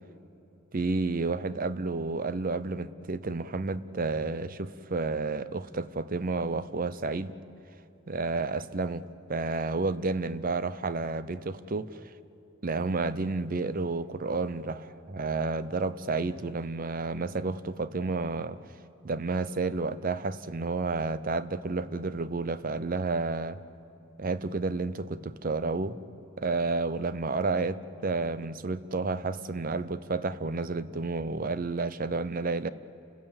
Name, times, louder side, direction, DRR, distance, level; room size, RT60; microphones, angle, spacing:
voice 1, 0.7-7.3 8.1-9.0 9.3-12.0 12.6-18.6 19.0-23.6 24.2-26.0 26.4-32.7, right 3 dB, 45° right, 0.7 m, -31 dB
30.0 x 15.5 x 8.8 m
head